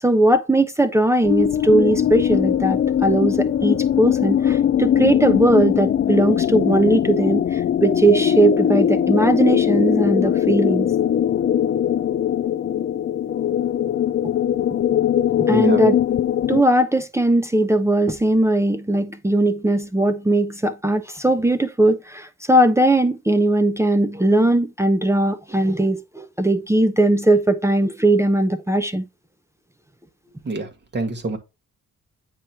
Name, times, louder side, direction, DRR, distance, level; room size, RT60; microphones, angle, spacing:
voice 1, 0.0-10.9 15.5-16.0 16.5-29.1, right 1 dB, 10° right, 0.7 m, -19 dB
sound 1, 1.2-16.6, left 9 dB, 40° left, 0.5 m, -20 dB
voice 2, 15.5-15.9 30.4-31.4, right 2 dB, 35° right, 2.2 m, -27 dB
9.2 x 3.1 x 5.9 m
cardioid pair, 90°, 30 cm